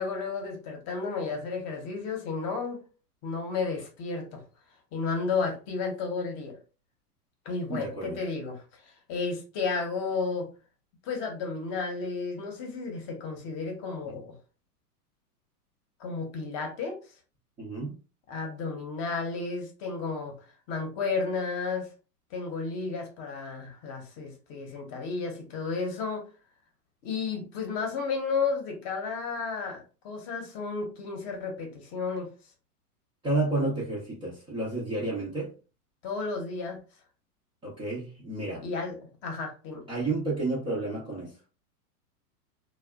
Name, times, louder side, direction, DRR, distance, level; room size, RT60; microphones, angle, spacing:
voice 1, 0.0-2.8 3.2-4.4 4.9-6.5 7.4-10.5 11.0-14.3 16.0-17.0 18.3-21.9 22.3-26.2 27.0-32.3 36.0-36.8 38.6-39.0 39.2-39.8, left 4 dB, 35° left, 0.8 m, -32 dB
voice 2, 7.7-8.2 17.6-18.0 33.2-35.5 37.6-38.6 39.9-41.3, right 2 dB, 10° right, 0.4 m, -31 dB
2.7 x 2.3 x 2.2 m
hypercardioid pair, 125°, 47 cm